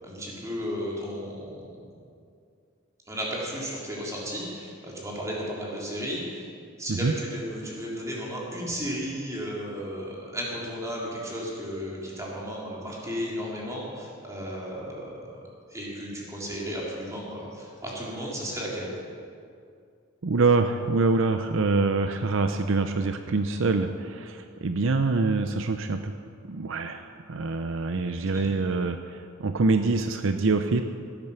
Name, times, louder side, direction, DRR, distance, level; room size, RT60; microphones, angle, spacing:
voice 1, 0.0-1.7 3.1-6.4 6.8-15.1 15.7-19.0 28.3-28.5, equal, 15° right, -4 dB, 3.5 m, -34 dB
voice 2, 20.2-26.1 26.5-30.8, right 3 dB, 65° right, 7 dB, 0.6 m, -25 dB
16.5 x 9.0 x 6.9 m, 2.3 s
head